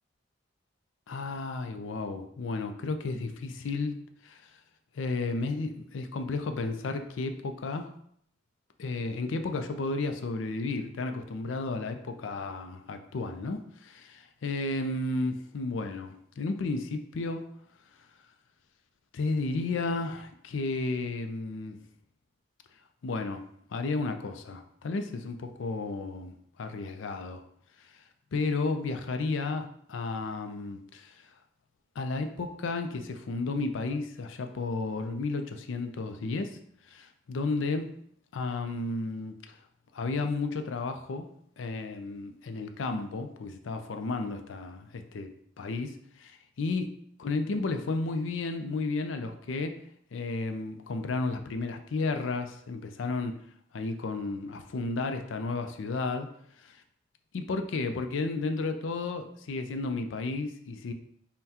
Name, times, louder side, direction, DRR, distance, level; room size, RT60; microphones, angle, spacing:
voice 1, 1.1-4.0 4.2-4.4 5.0-7.9 8.8-12.0 12.2-17.5 19.1-21.8 23.0-23.4 23.7-27.4 28.3-31.1 32.0-36.6 36.9-37.9 38.3-39.4 39.9-41.3 41.6-45.3 45.6-45.9 46.2-46.9 47.2-49.8 50.1-53.3 53.7-56.3 56.6-56.8 57.3-60.9, left 3 dB, 80° left, 7 dB, 0.4 m, -33 dB
5.5 x 2.2 x 2.8 m, 0.67 s
head